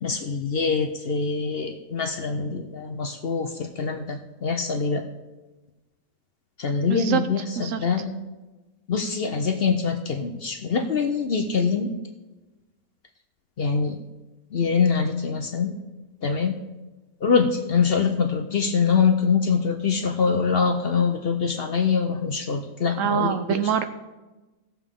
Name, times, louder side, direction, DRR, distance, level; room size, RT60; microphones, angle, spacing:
voice 1, 0.0-5.0 6.6-8.2 8.9-11.9 13.6-14.0 14.5-15.7 16.2-16.6 17.2-23.6, left 5 dB, 50° left, 6 dB, 0.8 m, -24 dB
voice 2, 6.9-7.2 7.6-7.8 23.0-23.9, right 8 dB, 70° right, 10 dB, 0.9 m, -24 dB
17.5 x 7.0 x 3.7 m, 1.1 s
omnidirectional pair, 1.5 m